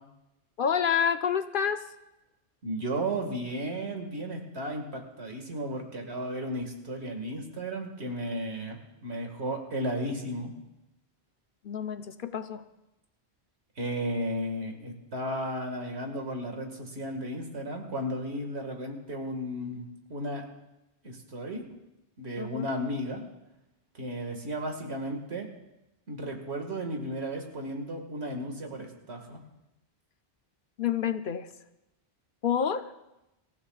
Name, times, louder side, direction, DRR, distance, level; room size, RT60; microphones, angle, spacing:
voice 1, 0.6-1.9 11.6-12.6 22.4-22.7 30.8-31.5 32.4-32.9, left 7 dB, 60° left, 9 dB, 0.8 m, -28 dB
voice 2, 2.6-10.5 13.8-20.4 21.0-21.6 22.2-23.2 23.9-25.5 26.1-29.4, right 1 dB, 90° right, 3 dB, 2.2 m, -34 dB
25.5 x 14.5 x 2.4 m, 0.94 s
omnidirectional pair, 1.1 m